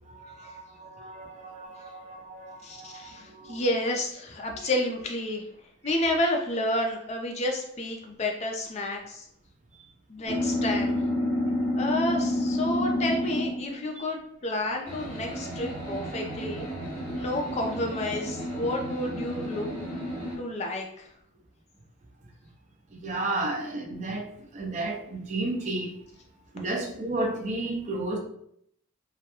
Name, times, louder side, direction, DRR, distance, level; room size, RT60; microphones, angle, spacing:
voice 1, 0.0-3.7 4.4-4.7 5.8-5.9 9.7-9.8 22.9-26.0 26.5-28.2, right 2 dB, 35° right, 2 dB, 0.4 m, -33 dB
voice 2, 2.6-5.4 5.8-9.3 10.1-11.0 11.8-16.7 17.1-19.7 20.4-21.1, left 1 dB, 30° left, 1 dB, 0.4 m, -30 dB
sound 1, 10.3-13.8 14.9-20.4, left 1 dB, 5° left, 1.0 m, -30 dB
2.2 x 2.1 x 2.8 m, 0.70 s
head